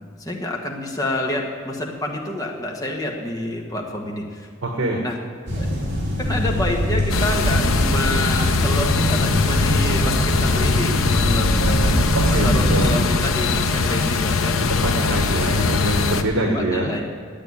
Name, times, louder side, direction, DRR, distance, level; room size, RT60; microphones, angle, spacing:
voice 1, 0.2-4.5 5.0-5.2 5.6-5.8 6.2-12.1 12.4-14.6 16.4-17.0, left 1 dB, 20° left, 0 dB, 1.5 m, -28 dB
voice 2, 4.6-5.0 12.1-12.9 14.7-16.9, right 1 dB, 85° right, 1 dB, 1.4 m, -24 dB
sound 1, 5.5-13.0, equal, 55° right, 3.1 m, -22 dB
sound 2, 7.1-16.2, left 4 dB, 75° left, 0.8 m, -21 dB
8.9 x 8.8 x 9.7 m, 2.1 s
head